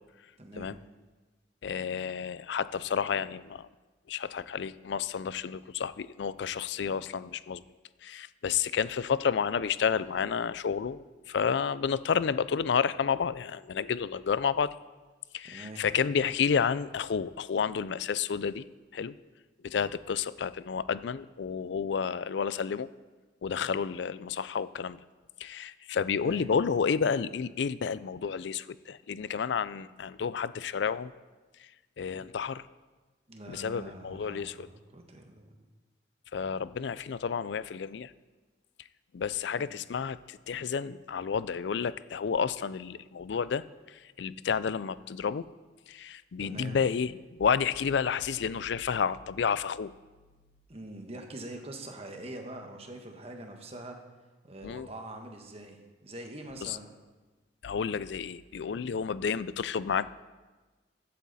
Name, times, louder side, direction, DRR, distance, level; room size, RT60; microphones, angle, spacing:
voice 1, 0.4-0.7 15.4-15.9 26.2-26.5 33.3-35.7 39.5-39.8 46.4-46.8 50.7-54.0 54.4-56.9, right 1 dB, 35° right, 3 dB, 1.3 m, -44 dB
voice 2, 1.6-3.7 4.1-7.6 8.0-14.7 15.3-18.6 18.9-19.1 19.6-22.9 23.4-25.0 25.4-31.1 32.0-32.6 33.5-34.7 36.3-38.1 39.1-45.5 45.9-49.9 54.6-54.9 56.6-56.8 57.6-60.1, left 6 dB, 65° left, 17 dB, 0.4 m, -30 dB
14.5 x 8.6 x 4.1 m, 1.3 s
head